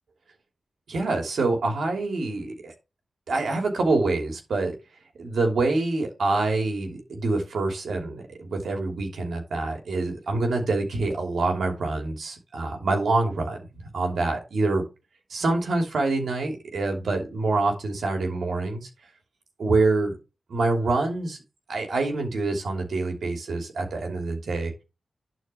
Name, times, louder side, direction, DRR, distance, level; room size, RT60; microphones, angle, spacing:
voice 1, 0.9-2.7 3.3-4.8 5.2-13.7 13.9-14.8 15.3-18.9 19.6-20.1 20.5-21.4 21.7-24.7, right 3 dB, 85° right, 3 dB, 2.9 m, -26 dB
11.0 x 4.5 x 5.7 m, 0.27 s
cardioid pair, 40°, 0 cm